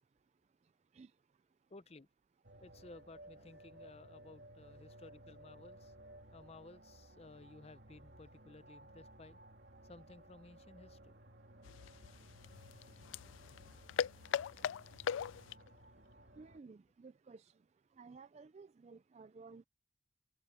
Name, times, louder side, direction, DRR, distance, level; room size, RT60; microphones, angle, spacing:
voice 1, 1.7-2.1 2.6-5.9 6.3-9.4 9.8-11.2, left 3 dB, 30° left, 0.6 m, -57 dB
sound 1, 2.4-16.6, right 1 dB, 60° right, 2.1 m, -58 dB
sound 2, 11.6-15.7, left 8 dB, 80° left, 0.3 m, -40 dB
voice 2, 16.4-17.5 18.0-19.6, right 4 dB, 35° right, 0.3 m, -55 dB
head